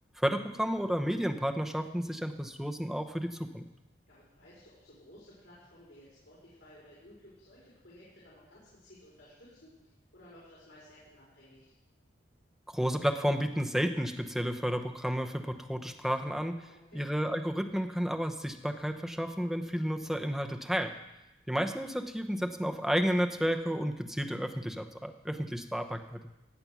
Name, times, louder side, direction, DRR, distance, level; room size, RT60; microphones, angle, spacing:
voice 1, 0.2-3.7 12.7-16.7 16.9-20.9 21.5-26.2, equal, ahead, 4 dB, 0.8 m, -31 dB
voice 2, 4.1-11.7 16.7-17.1, left 1 dB, 75° left, -7 dB, 4.5 m, -56 dB
16.5 x 8.5 x 6.1 m, 0.97 s
head